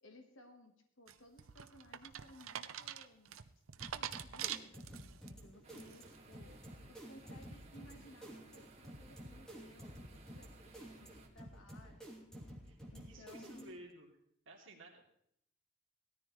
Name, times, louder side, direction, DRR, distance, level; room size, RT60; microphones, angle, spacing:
voice 1, 0.0-3.4 3.9-12.2 12.9-13.8, left 1 dB, 65° left, 3 dB, 1.5 m, -60 dB
sound 1, 1.1-5.3 5.7-6.2, right 9 dB, 80° right, 0.7 m, -44 dB
sound 2, 3.8-13.9, equal, 5° left, 3.0 m, -52 dB
sound 3, 5.6-11.3, right 2 dB, 30° right, 1.9 m, -60 dB
voice 2, 12.6-14.1 14.5-15.0, right 1 dB, 65° right, -1 dB, 2.7 m, -56 dB
18.5 x 13.5 x 3.2 m, 0.71 s
head